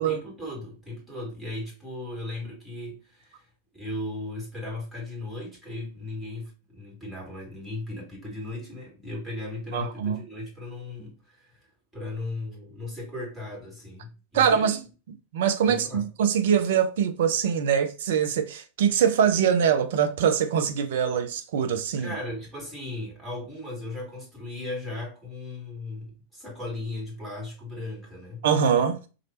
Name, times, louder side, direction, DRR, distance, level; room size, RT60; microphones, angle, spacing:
voice 1, 0.0-3.5 3.7-11.6 11.9-14.8 15.7-16.1 22.0-28.4, left 2 dB, 5° right, 2.1 m, -37 dB
voice 2, 9.7-10.2 14.3-14.8 15.3-22.1 28.4-29.1, right 8 dB, 55° right, 0.6 m, -23 dB
3.2 x 2.6 x 4.2 m
figure-of-eight pair, 90°, 0 cm